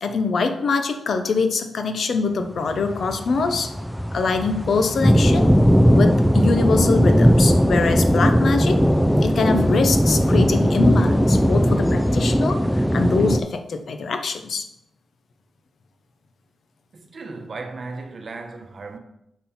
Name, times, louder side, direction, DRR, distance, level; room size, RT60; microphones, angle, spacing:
voice 1, 0.0-3.7 4.1-5.5 5.9-8.8 9.2-12.6 12.9-14.6, left 4 dB, 65° left, 0.7 m, -23 dB
sound 1, 2.7-13.4, equal, ahead, 0.3 m, -18 dB
voice 2, 16.9-19.0, right 3 dB, 50° right, 0.9 m, -36 dB
6.1 x 5.4 x 4.3 m
cardioid pair, 90°, 0 cm